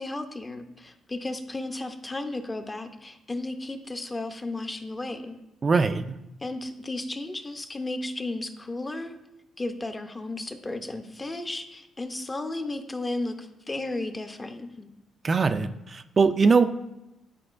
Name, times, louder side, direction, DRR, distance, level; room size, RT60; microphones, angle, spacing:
voice 1, 0.0-5.4 6.4-9.2 9.6-14.9, left 2 dB, 20° left, 7 dB, 0.6 m, -34 dB
voice 2, 5.6-6.0 15.2-16.6, right 4 dB, 35° right, 8 dB, 0.3 m, -21 dB
9.9 x 4.3 x 2.5 m, 0.91 s
cardioid pair, 90°, 0 cm